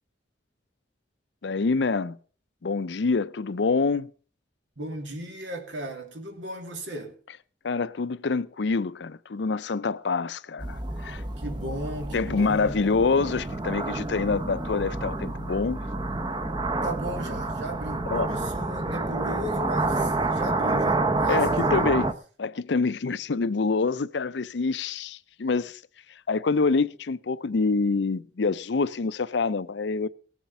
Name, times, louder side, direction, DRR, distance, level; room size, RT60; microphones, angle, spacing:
voice 1, 1.4-2.2 2.6-4.1 7.6-11.2 12.1-15.8 18.1-18.3 21.3-22.1 22.4-25.8 26.3-30.1, left 4 dB, 65° left, 0.5 m, -26 dB
voice 2, 4.8-7.1 11.4-12.8 16.8-21.9, right 1 dB, 85° right, 2.8 m, -36 dB
sound 1, 10.6-22.1, right 2 dB, 25° right, 0.7 m, -28 dB
18.5 x 7.3 x 5.5 m
head